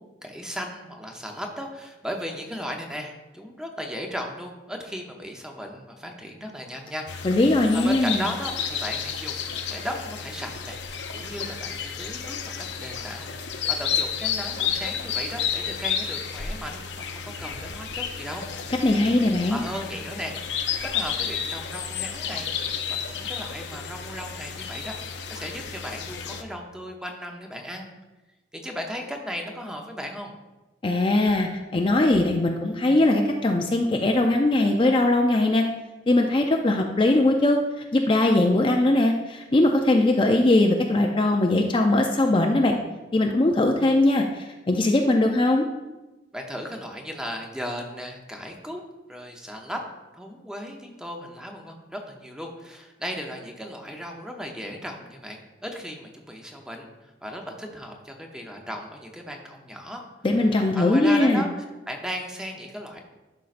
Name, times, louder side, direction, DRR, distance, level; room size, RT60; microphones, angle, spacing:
voice 1, 0.0-7.3 7.7-10.8 11.1-18.5 19.5-20.4 20.8-22.5 22.9-27.9 28.5-30.3 46.3-48.8 49.1-49.8 50.1-60.0 60.7-61.5 61.9-63.0, equal, 5° right, 2 dB, 0.7 m, -36 dB
sound 1, 7.1-26.4, left 7 dB, 80° left, 0.6 m, -31 dB
voice 2, 7.2-8.2 18.8-19.6 30.8-35.6 36.1-42.8 43.1-45.7 60.2-61.5, left 2 dB, 30° left, 2 dB, 0.4 m, -20 dB
11.5 x 5.4 x 2.5 m, 1.1 s
head